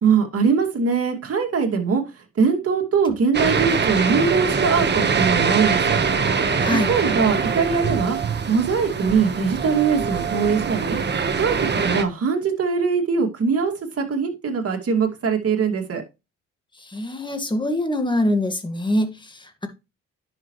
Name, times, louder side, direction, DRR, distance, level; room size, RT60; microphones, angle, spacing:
voice 1, 0.0-2.0 2.4-6.0 6.7-8.2 8.5-11.0 11.3-16.0, right 5 dB, 50° right, 2.5 m, -22 dB
sound 1, 3.3-12.0, right 5 dB, 35° right, 1.3 m, -23 dB
voice 2, 6.6-6.9 16.8-19.7, left 1 dB, 15° left, 1.9 m, -24 dB
10.5 x 6.1 x 3.2 m
cardioid pair, 90°, 30 cm